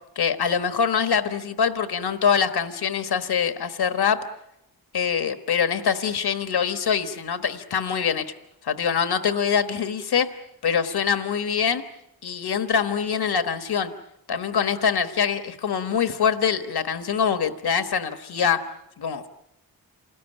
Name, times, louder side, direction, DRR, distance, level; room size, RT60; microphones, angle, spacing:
voice 1, 0.2-4.2 4.9-8.2 8.6-10.3 10.6-11.8 12.2-13.9 14.3-18.6 19.0-19.3, left 7 dB, 90° left, 8 dB, 1.3 m, -24 dB
27.5 x 19.0 x 9.0 m, 0.85 s
wide cardioid pair, 85°, 37 cm